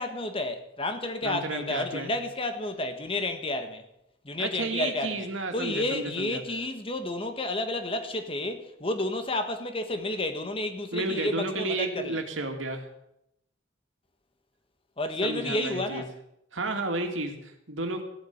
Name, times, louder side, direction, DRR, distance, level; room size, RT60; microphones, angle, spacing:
voice 1, 0.0-3.9 4.2-5.3 5.5-12.2 15.0-16.1, left 2 dB, 30° left, 1.4 m, -31 dB
voice 2, 1.2-2.1 4.4-6.4 10.9-12.8 15.2-16.0 16.5-18.0, right 2 dB, 85° right, 2.4 m, -32 dB
15.5 x 8.4 x 8.5 m
head